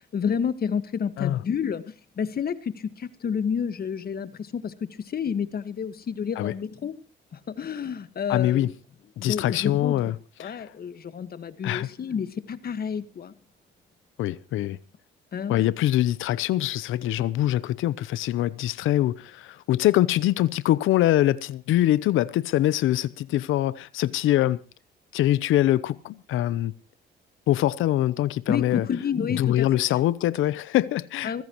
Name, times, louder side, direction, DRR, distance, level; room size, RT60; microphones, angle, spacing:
voice 1, 0.0-6.9 7.3-8.7 9.2-13.3 15.3-15.7 28.5-30.0 31.2-31.4, left 7 dB, 50° left, 1.6 m, -30 dB
voice 2, 8.3-8.7 9.2-10.1 10.4-10.7 11.6-11.9 14.2-14.8 15.5-24.6 25.1-26.7 27.5-28.9 29.3-31.4, left 14 dB, 85° left, 0.7 m, -24 dB
24.0 x 15.5 x 3.1 m
cardioid pair, 90°, 20 cm